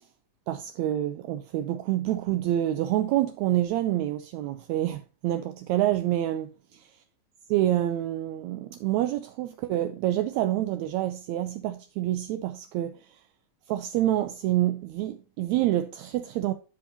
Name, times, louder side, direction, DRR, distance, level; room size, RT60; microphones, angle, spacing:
voice 1, 0.5-6.5 7.5-13.2 13.7-16.5, right 13 dB, 80° right, 1.8 m, -27 dB
11.5 x 5.3 x 2.7 m
omnidirectional pair, 3.4 m